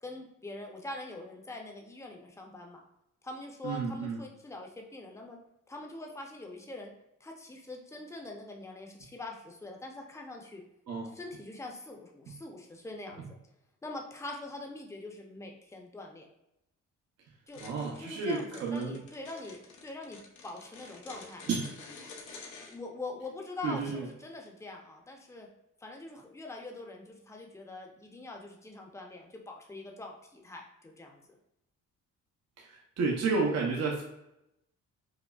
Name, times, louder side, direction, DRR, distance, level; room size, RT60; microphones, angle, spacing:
voice 1, 0.0-2.8 3.2-5.4 5.7-6.9 7.2-10.6 11.0-13.3 13.8-16.3 17.5-21.5 22.7-25.5 25.8-31.2, left 2 dB, 10° left, 1 dB, 0.7 m, -44 dB
voice 2, 3.6-4.2 10.9-11.1 17.6-19.0 21.5-21.7 23.6-24.0 32.6-34.0, right 4 dB, 55° right, -1 dB, 0.7 m, -31 dB
sound 1, 17.5-22.8, left 4 dB, 80° left, 0.7 m, -49 dB
5.0 x 2.1 x 2.3 m, 0.85 s
cardioid pair, 90°, 30 cm